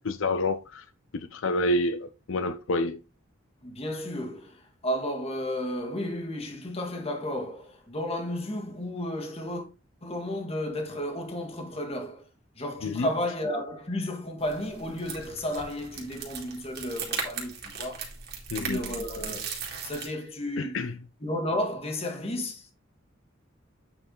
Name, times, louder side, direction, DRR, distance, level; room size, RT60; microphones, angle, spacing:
voice 1, 0.0-0.9 1.3-3.0 12.8-13.1 18.5-18.9 20.6-20.9, left 2 dB, 80° left, 0.6 m, -28 dB
voice 2, 3.6-9.7 10.0-12.3 12.6-18.1 18.6-19.5 19.8-20.8 21.2-22.7, left 1 dB, 30° left, 1.8 m, -33 dB
sound 1, 14.4-20.1, right 6 dB, 55° right, 2.5 m, -38 dB
8.7 x 4.7 x 3.8 m
head